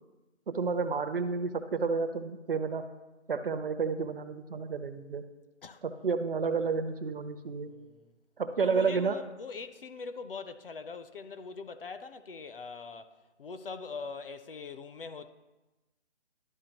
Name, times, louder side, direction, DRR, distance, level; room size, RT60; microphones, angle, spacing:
voice 1, 0.5-2.8 3.3-5.2 5.8-7.7 8.4-9.2, right 5 dB, 50° right, 0.6 m, -30 dB
voice 2, 7.7-8.1 8.6-15.3, left 4 dB, 50° left, 0.5 m, -42 dB
12.0 x 4.3 x 2.9 m
figure-of-eight pair, 160°, 35 cm